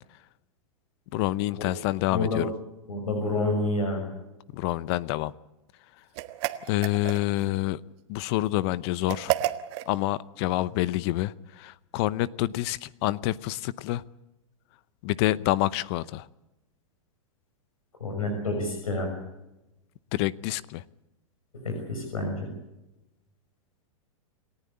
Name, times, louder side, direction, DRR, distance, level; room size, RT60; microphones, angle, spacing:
voice 1, 1.1-2.5 4.5-5.3 6.6-7.8 8.1-9.3 9.9-14.0 15.0-16.3 20.1-20.8, left 16 dB, 50° left, 19 dB, 0.8 m, -27 dB
voice 2, 2.1-2.4 2.9-4.0 18.0-19.1 21.5-22.5, left 2 dB, 90° left, 3 dB, 6.2 m, -28 dB
sound 1, 6.1-7.5 9.1-9.9, right 15 dB, 55° right, 1.5 m, -30 dB
28.0 x 14.5 x 8.5 m, 0.97 s
hypercardioid pair, 115°, 18 cm